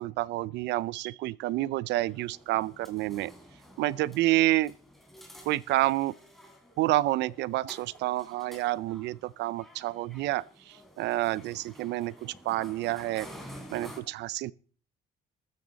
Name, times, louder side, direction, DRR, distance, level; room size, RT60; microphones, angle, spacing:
voice 1, 0.0-3.3 3.8-4.7 5.4-6.1 6.8-13.3 13.7-14.5, right 16 dB, 85° right, 0.5 m, -29 dB
sound 1, 2.0-14.0, equal, ahead, 3.8 m, -50 dB
15.0 x 13.5 x 4.0 m
cardioid pair, 120°, 17 cm